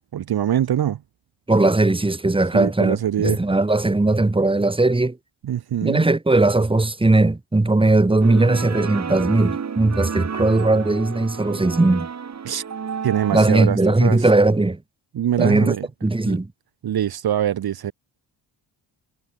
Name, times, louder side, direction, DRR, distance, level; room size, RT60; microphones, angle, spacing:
voice 1, 0.1-1.0 2.5-3.4 5.4-6.0 12.4-12.6 13.0-14.2 15.1-15.9 16.3-16.4 16.8-17.9, right 10 dB, 55° right, 1.5 m, -23 dB
voice 2, 1.5-5.2 5.8-12.1 13.3-14.8 15.4-15.7 16.0-16.5, right 2 dB, 10° right, 3.6 m, -18 dB
sound 1, 8.2-13.5, right 6 dB, 35° right, 3.8 m, -30 dB
wide cardioid pair, 160°, 46 cm